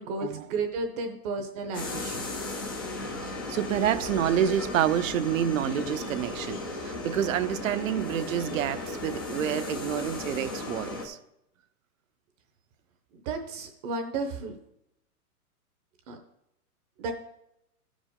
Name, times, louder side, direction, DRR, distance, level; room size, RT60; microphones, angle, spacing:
voice 1, 0.0-2.3 13.1-14.6 16.1-16.2 17.0-17.1, right 3 dB, 25° right, 0.7 m, -33 dB
sound 1, 1.7-11.1, left 2 dB, 15° left, 0.4 m, -35 dB
voice 2, 3.0-11.2, right 10 dB, 60° right, 0.7 m, -28 dB
13.0 x 5.2 x 3.6 m
hypercardioid pair, 145°, 46 cm